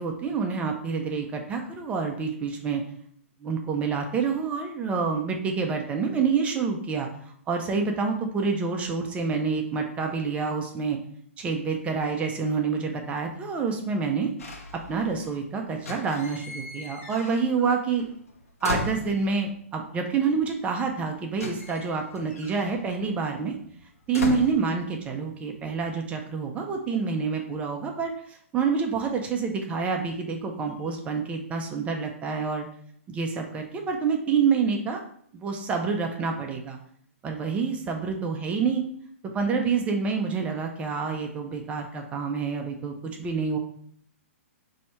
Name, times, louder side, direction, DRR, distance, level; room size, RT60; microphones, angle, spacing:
voice 1, 0.0-2.8 3.4-7.1 7.5-11.0 11.4-14.3 14.9-18.0 18.6-23.5 24.1-32.7 33.1-35.0 35.3-36.8 37.2-38.8 39.3-42.9 43.2-43.6, right 5 dB, 15° right, 3 dB, 0.5 m, -27 dB
sound 1, 14.4-15.4 15.7-17.7 18.0-19.6 20.6-20.7 20.9-25.3 25.6-26.1, left 2 dB, 85° left, 1.1 m, -37 dB
4.2 x 2.8 x 4.3 m, 0.63 s
hypercardioid pair, 135°, 8 cm